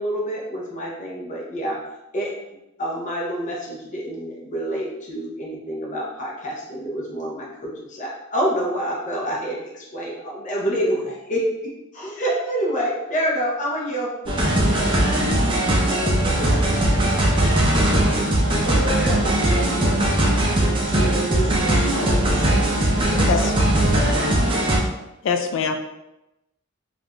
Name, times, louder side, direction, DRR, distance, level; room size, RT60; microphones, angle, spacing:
voice 1, 0.0-1.8 2.1-2.4 2.8-14.4, equal, 35° left, -3 dB, 0.7 m, -27 dB
sound 1, 14.3-24.8, right 1 dB, 25° right, 0.5 m, -19 dB
voice 2, 15.6-17.5 18.6-19.4 20.6-23.5 23.8-24.3, right 2 dB, 75° right, -4 dB, 0.7 m, -32 dB
voice 3, 25.2-25.8, left 6 dB, 65° left, 6 dB, 0.3 m, -23 dB
3.2 x 2.5 x 2.2 m, 0.93 s
head